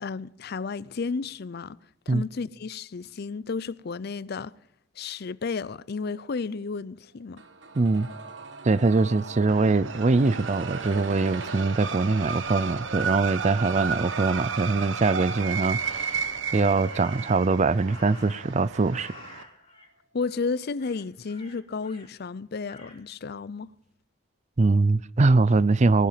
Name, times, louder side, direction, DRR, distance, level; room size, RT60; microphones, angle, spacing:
voice 1, 0.0-1.8 2.1-4.6 5.0-7.4 20.1-23.7, left 4 dB, 55° left, 0.5 m, -32 dB
sound 1, 7.4-19.2 19.5-19.6, right 4 dB, 70° right, 1.3 m, -43 dB
voice 2, 7.7-8.1 8.6-19.1 24.6-26.1, right 3 dB, 40° right, 0.5 m, -23 dB
sound 2, 9.5-19.4, right 6 dB, 90° right, 1.0 m, -33 dB
Crow, 10.2-12.0 15.7-16.5 16.8-18.6 18.9-19.9 20.2-20.5 20.8-22.1 22.7-23.0, left 2 dB, 30° left, 3.5 m, -50 dB
18.5 x 12.0 x 5.7 m
head